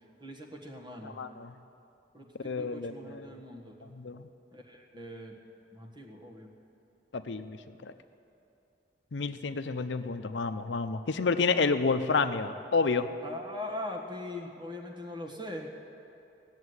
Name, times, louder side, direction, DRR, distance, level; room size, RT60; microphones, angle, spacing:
voice 1, 0.2-1.2 2.1-3.9 4.5-5.4 5.7-6.5 13.2-15.7, left 1 dB, 25° right, 0 dB, 1.6 m, -41 dB
voice 2, 1.0-1.5 2.4-3.3 3.9-4.2 7.1-7.6 7.8-7.9 9.1-13.1, left 4 dB, 80° left, 9 dB, 0.6 m, -29 dB
17.5 x 7.3 x 9.6 m, 2.8 s
head